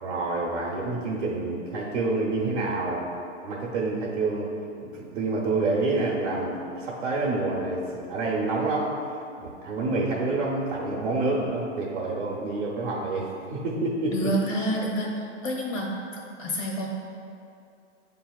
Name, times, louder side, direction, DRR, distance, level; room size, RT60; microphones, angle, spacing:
voice 1, 0.0-3.0 3.4-4.5 4.8-9.0 9.4-14.3, right 3 dB, 65° right, -4 dB, 0.9 m, -28 dB
voice 2, 14.1-15.9 16.4-16.9, right 1 dB, 90° left, -2 dB, 1.3 m, -28 dB
8.0 x 2.8 x 2.3 m, 2.5 s
hypercardioid pair, 170°, 38 cm